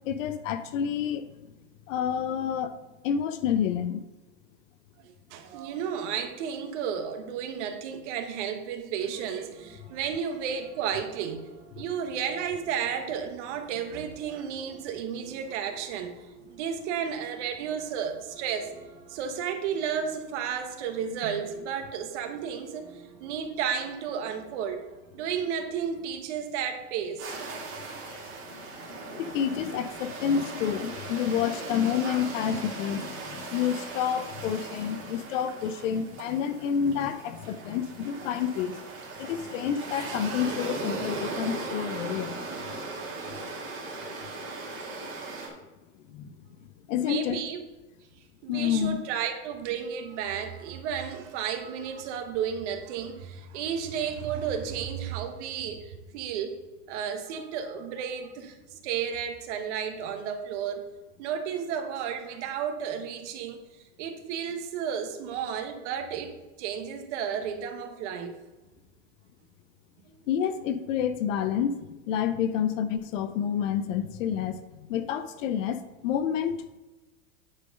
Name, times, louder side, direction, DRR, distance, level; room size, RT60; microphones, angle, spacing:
voice 1, 0.1-1.2 1.9-2.8 3.0-4.0 28.9-38.8 39.2-42.4 46.1-46.4 46.9-47.4 48.5-49.0 70.3-76.8, left 8 dB, 55° left, 11 dB, 0.7 m, -29 dB
voice 2, 5.0-11.4 11.8-16.1 16.5-18.7 19.1-24.8 25.1-27.4 28.3-28.4 47.0-47.6 48.4-56.6 56.9-60.8 61.2-63.6 64.0-66.3 66.6-68.4 70.1-70.2, right 7 dB, 50° right, 6 dB, 1.1 m, -33 dB
sound 1, 9.2-26.1, right 6 dB, 80° right, 1.9 m, -54 dB
sound 2, 27.2-45.5, right 3 dB, 25° right, 2.1 m, -38 dB
9.8 x 4.1 x 5.2 m, 1.1 s
supercardioid pair, 155°, 45 cm